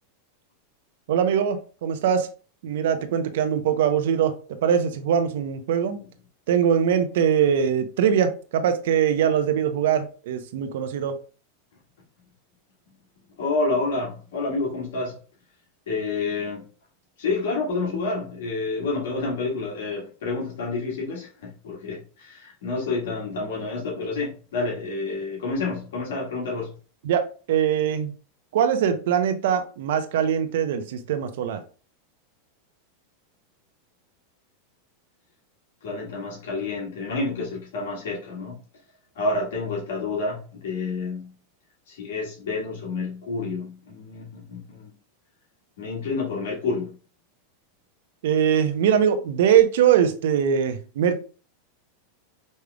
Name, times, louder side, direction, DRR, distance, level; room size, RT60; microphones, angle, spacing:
voice 1, 1.1-2.3 2.6-6.0 6.5-11.2 27.0-28.1 28.5-31.6 48.2-51.2, right 8 dB, 75° right, 0.8 m, -22 dB
voice 2, 13.4-15.2 15.9-16.7 17.2-26.7 35.8-38.6 39.2-41.3 41.9-44.9 45.8-47.0, left 3 dB, 85° left, 1.8 m, -29 dB
5.4 x 3.2 x 2.3 m
supercardioid pair, 140°, 0 cm